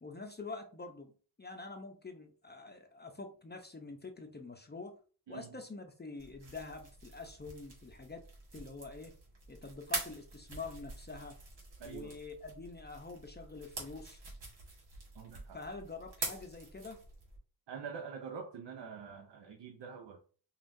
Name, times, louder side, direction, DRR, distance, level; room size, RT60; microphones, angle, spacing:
voice 1, 0.0-1.1 1.4-5.0 5.3-8.3 8.5-9.1 9.5-11.4 11.8-14.2 15.5-17.0, left 3 dB, 25° left, 5 dB, 0.6 m, -46 dB
voice 2, 5.3-5.6 11.8-12.1 15.1-15.6 17.7-20.2, right 6 dB, 65° right, 4 dB, 0.8 m, -45 dB
sound 1, 6.2-17.4, right 3 dB, 85° right, 1.8 m, -46 dB
5.4 x 2.5 x 2.6 m, 0.39 s
cardioid pair, 60°, 45 cm